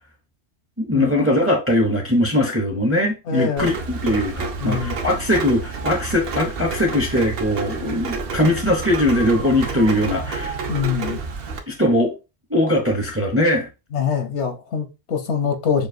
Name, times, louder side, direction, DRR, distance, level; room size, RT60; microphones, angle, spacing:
voice 1, 0.8-10.6 11.7-12.1 12.5-13.7, left 1 dB, 15° right, 0.5 m, -20 dB
voice 2, 3.3-3.7 4.6-5.0 10.7-11.2 13.9-15.9, left 6 dB, 80° left, 1.1 m, -24 dB
Rain, 3.6-11.6, right 4 dB, 60° right, 0.8 m, -29 dB
6.6 x 2.2 x 2.6 m
omnidirectional pair, 1.2 m